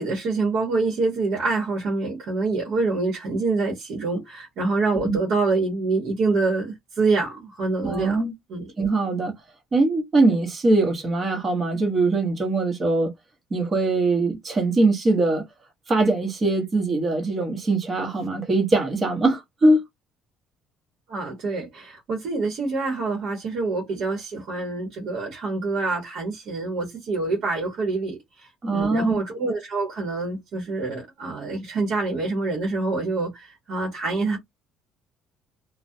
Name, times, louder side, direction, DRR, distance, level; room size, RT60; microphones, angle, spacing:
voice 1, 0.0-8.2 8.5-8.7 21.1-34.4, right 3 dB, 60° right, 0.9 m, -26 dB
voice 2, 7.8-8.3 8.8-9.3 9.7-13.1 13.5-15.4 15.9-19.8 28.6-29.2, right 2 dB, 25° right, 0.9 m, -22 dB
2.3 x 2.1 x 2.6 m
cardioid pair, 145°, 0 cm